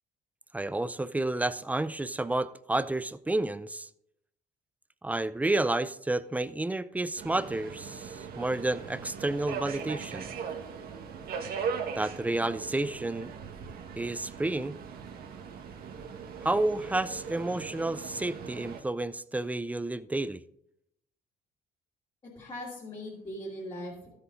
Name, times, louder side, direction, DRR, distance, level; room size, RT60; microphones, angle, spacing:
voice 1, 0.5-3.9 5.0-10.3 12.0-13.3 14.0-14.8 16.4-20.4, right 2 dB, 10° right, 0.4 m, -30 dB
Subway metro underground, 7.2-18.8, right 6 dB, 60° right, 1.5 m, -39 dB
voice 2, 22.2-24.1, left 1 dB, 30° left, 2.8 m, -40 dB
13.0 x 8.2 x 3.8 m
cardioid pair, 110°, 17 cm